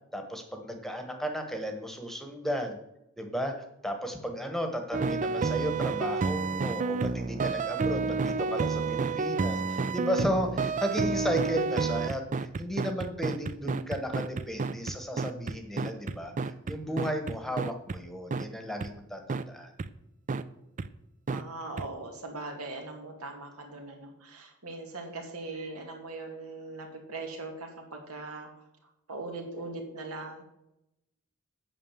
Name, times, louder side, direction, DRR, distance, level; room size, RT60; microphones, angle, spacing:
voice 1, 0.1-2.8 3.2-19.2 19.5-19.7, equal, ahead, 5 dB, 1.1 m, -34 dB
sound 1, 4.9-18.0 18.3-18.4 18.8-18.9 19.3-19.4 19.8-19.9 20.3-20.4 20.8-20.9 21.3-21.4 21.8-21.9, right 4 dB, 35° right, 0.4 m, -30 dB
voice 2, 21.3-28.7 29.1-30.5, right 2 dB, 85° right, 2 dB, 2.4 m, -40 dB
8.8 x 6.3 x 7.3 m, 0.84 s
head